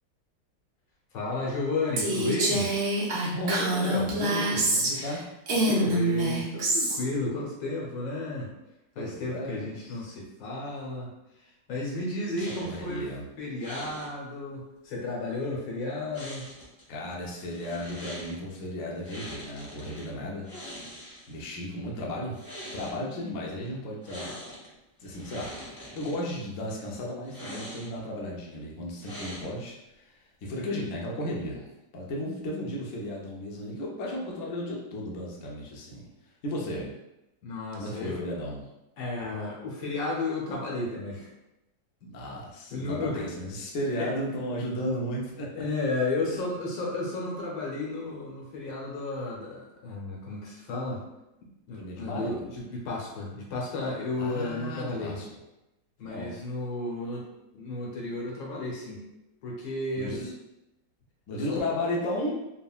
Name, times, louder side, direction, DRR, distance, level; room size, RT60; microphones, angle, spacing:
voice 1, 1.1-2.8 5.7-8.5 9.0-11.1 11.7-13.1 13.4-16.5 37.4-38.2 39.0-41.3 42.0-42.1 42.7-43.2 44.0-44.1 45.5-51.0 51.4-55.2 56.0-57.3 57.5-59.0 59.4-60.2 61.3-61.6, left 2 dB, 80° left, -3 dB, 1.4 m, -33 dB
Female speech woman speaking, 2.0-5.1 5.5-7.0, right 1 dB, 75° right, 0.6 m, -26 dB
voice 2, 3.3-6.0 9.0-9.9 12.6-13.2 16.9-20.5 21.3-22.4 22.7-24.5 25.0-30.1 30.4-31.7 31.9-36.1 36.4-36.9 37.8-38.6 42.1-45.6 46.2-46.4 51.7-52.4 54.2-55.3 56.1-56.3 60.0-60.3 61.3-62.3, left 1 dB, 65° left, -3 dB, 0.8 m, -34 dB
sound 1, 12.4-12.9 13.6-14.1 16.1-16.8 17.5-18.3 19.0-20.1 20.4-21.4 22.2-23.0 24.0-24.7 25.0-26.2 27.2-28.1 29.0-29.7, equal, 35° left, 0.3 m, -42 dB
3.6 x 2.1 x 2.3 m, 0.92 s
omnidirectional pair, 1.9 m